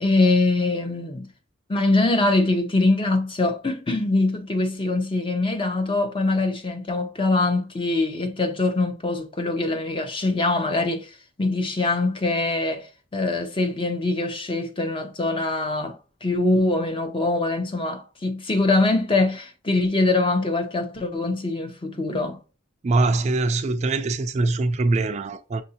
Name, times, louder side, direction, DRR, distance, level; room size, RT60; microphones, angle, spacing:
voice 1, 0.0-1.3 1.7-22.4, left 2 dB, 25° left, 0.6 m, -23 dB
voice 2, 22.8-25.6, right 3 dB, 35° right, 0.3 m, -23 dB
6.2 x 2.6 x 2.7 m
head